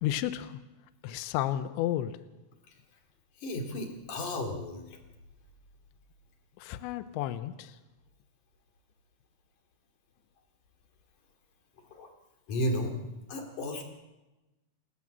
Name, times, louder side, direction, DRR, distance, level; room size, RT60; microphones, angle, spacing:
voice 1, 0.0-0.6 1.0-2.2 6.6-7.8, left 13 dB, 80° left, 11 dB, 3.0 m, -32 dB
voice 2, 3.4-4.8 11.9-12.1 12.5-13.0 13.3-13.8, left 1 dB, 45° left, 3 dB, 3.9 m, -33 dB
28.5 x 12.5 x 7.5 m, 1.1 s
omnidirectional pair, 5.4 m